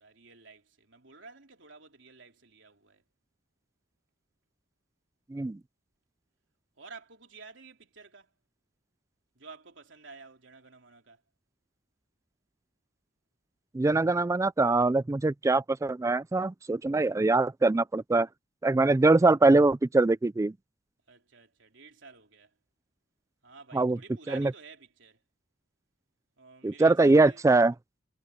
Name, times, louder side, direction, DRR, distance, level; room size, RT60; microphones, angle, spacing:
voice 1, 0.0-3.0 6.8-8.3 9.4-11.2 21.1-22.5 23.4-25.2 26.4-27.5, right 4 dB, 80° right, 3.4 m, -51 dB
voice 2, 13.7-18.3 18.6-20.5 23.7-24.0 24.3-24.5 26.6-27.7, right 2 dB, 15° right, 0.3 m, -23 dB
head